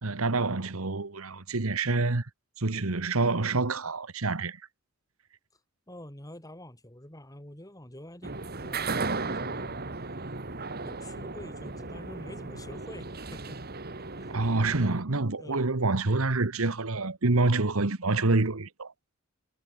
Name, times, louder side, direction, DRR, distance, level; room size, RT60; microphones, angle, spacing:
voice 1, 0.0-2.3 2.6-4.6 14.3-18.9, right 3 dB, 90° right, 1.4 m, -27 dB
voice 2, 5.9-9.8 10.8-13.6 13.9-14.4 15.4-15.7, left 1 dB, 15° left, 3.9 m, -47 dB
sound 1, 8.2-15.0, right 3 dB, 45° right, 2.6 m, -36 dB
head